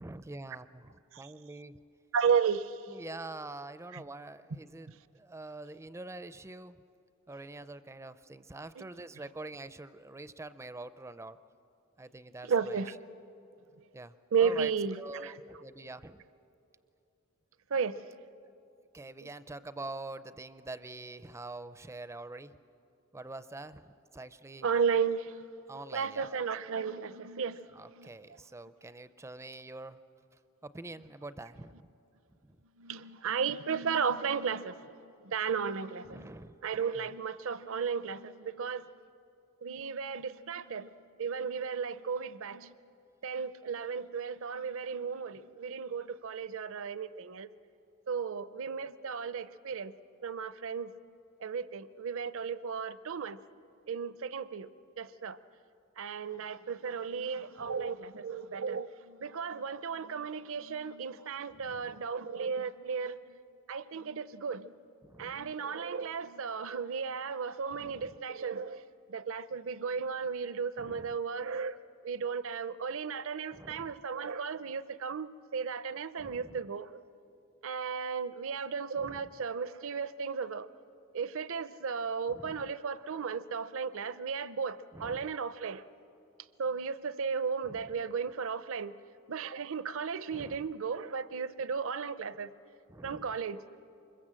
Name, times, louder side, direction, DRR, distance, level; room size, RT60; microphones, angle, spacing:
voice 1, 0.0-1.8 2.9-6.8 7.3-11.4 12.0-12.8 13.9-14.7 15.0-16.2 18.9-22.6 23.1-24.7 25.7-26.4 27.7-30.0 30.6-31.9 32.4-32.6 36.0-36.6 36.9-37.1 57.6-57.7 61.5-62.0 65.0-65.5 67.7-68.2 70.8-71.1 73.5-74.0 76.2-76.6 79.0-79.4 82.3-82.7 84.9-85.3 87.6-87.9 90.3-90.7 92.9-93.4, right 2 dB, 15° right, 14 dB, 0.4 m, -45 dB
voice 2, 2.1-2.8 3.9-4.0 8.8-8.9 12.5-12.9 14.3-15.3 17.7-18.1 19.2-19.3 24.6-25.4 25.9-28.1 32.8-36.3 36.6-38.8 39.6-40.9 41.2-42.7 43.2-47.5 48.1-49.9 50.2-50.9 51.4-53.4 53.9-54.7 55.0-55.4 56.0-63.4 63.7-64.7 65.2-68.8 69.1-71.8 72.0-77.0 77.6-80.7 81.1-85.8 86.6-89.0 89.3-92.5 93.0-93.6, right 6 dB, 60° right, 15 dB, 0.6 m, -34 dB
25.0 x 22.0 x 7.5 m, 2.8 s
head